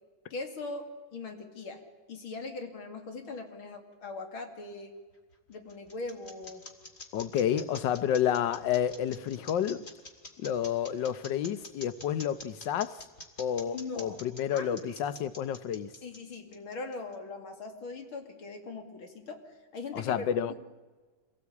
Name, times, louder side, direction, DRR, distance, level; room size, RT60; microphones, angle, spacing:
voice 1, 0.3-1.8 2.1-4.9 5.5-6.7 13.7-14.2 14.5-14.9 16.0-19.4 19.7-20.5, left 3 dB, 85° left, 3.3 m, -40 dB
sound 1, 5.1-17.1, left 2 dB, 30° left, 2.5 m, -47 dB
voice 2, 7.1-9.9 10.4-13.0 13.4-15.9 19.9-20.5, left 9 dB, 65° left, 1.5 m, -30 dB
26.0 x 18.0 x 8.4 m
omnidirectional pair, 2.2 m